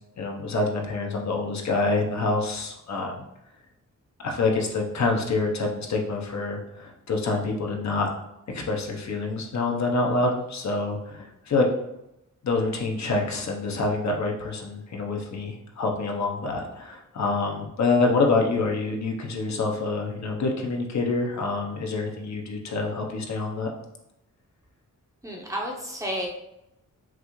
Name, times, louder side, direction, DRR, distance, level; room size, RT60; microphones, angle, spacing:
voice 1, 0.2-3.2 4.2-8.1 8.5-11.7 12.4-23.7, left 3 dB, 60° left, 1 dB, 0.8 m, -26 dB
voice 2, 25.2-26.3, equal, 10° right, -2 dB, 0.8 m, -31 dB
5.8 x 2.4 x 3.1 m, 0.86 s
wide cardioid pair, 125°, 32 cm